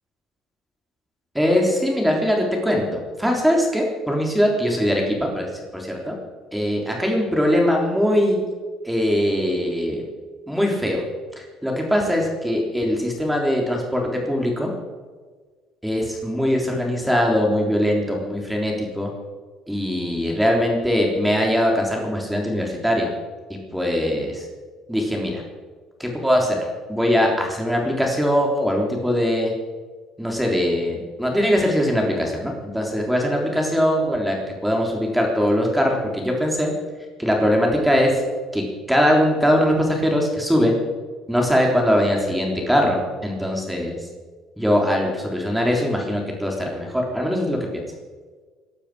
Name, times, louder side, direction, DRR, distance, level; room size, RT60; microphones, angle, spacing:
voice 1, 1.3-5.5 5.7-6.1 6.5-8.4 8.8-10.1 10.5-11.1 11.4-14.7 15.8-19.1 19.7-23.1 23.7-24.5 24.9-25.4 26.0-26.6 26.9-29.5 30.2-34.4 34.6-36.7 37.2-38.1 38.5-38.6 38.9-40.7 41.3-44.0 44.6-47.8, equal, 5° right, 0 dB, 3.7 m, -21 dB
21.0 x 12.5 x 5.1 m, 1.4 s
cardioid pair, 110°, 0 cm